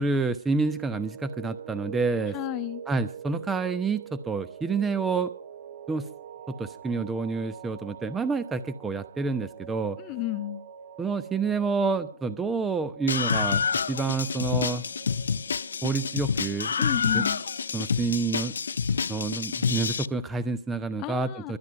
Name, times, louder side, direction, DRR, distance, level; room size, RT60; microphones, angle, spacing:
voice 1, 0.0-2.3 2.9-5.3 5.9-6.0 6.5-10.0 11.0-13.6 13.9-14.8 15.8-16.7 17.1-17.2 17.7-18.5 19.1-21.6, right 4 dB, 10° right, 14 dB, 0.9 m, -28 dB
sound 1, 0.6-18.0, right 8 dB, 35° right, 4.1 m, -45 dB
voice 2, 2.3-2.8 10.0-10.6 16.8-17.4 21.0-21.6, left 16 dB, 20° left, 13 dB, 1.2 m, -32 dB
Screaming, 13.1-20.1, left 6 dB, 55° left, 0.8 m, -28 dB
23.5 x 11.0 x 5.7 m, 0.40 s
figure-of-eight pair, 135°, 0 cm